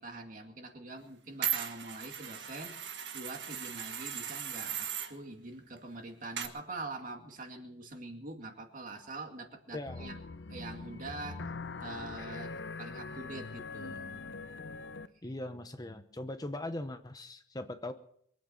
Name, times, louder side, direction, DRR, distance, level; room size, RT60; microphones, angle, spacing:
voice 1, 0.0-10.2 10.5-11.5 11.8-14.3 15.2-15.4, right 2 dB, 50° right, 3 dB, 2.4 m, -44 dB
sound 1, 1.4-5.1 6.4-6.5, right 9 dB, 80° right, 1.6 m, -37 dB
voice 2, 9.7-10.1 15.2-17.9, left 1 dB, 20° left, 9 dB, 0.8 m, -40 dB
sound 2, 9.9-15.1, left 4 dB, 85° left, 0.8 m, -42 dB
23.5 x 8.6 x 6.7 m, 0.68 s
head